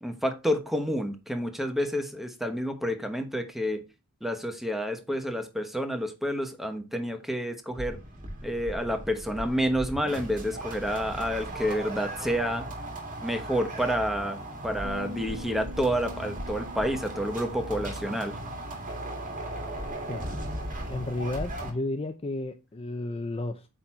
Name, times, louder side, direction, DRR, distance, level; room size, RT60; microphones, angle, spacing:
voice 1, 0.0-3.8 4.2-8.0 8.4-12.7 13.2-14.4 14.6-18.4, equal, ahead, 1.1 m, -29 dB
sound 1, 7.7-21.7, right 1 dB, 35° right, 2.3 m, -37 dB
Bass guitar, 14.8-21.1, left 3 dB, 90° left, 1.4 m, -47 dB
voice 2, 20.9-23.7, left 2 dB, 25° left, 0.5 m, -32 dB
8.7 x 4.1 x 4.4 m
head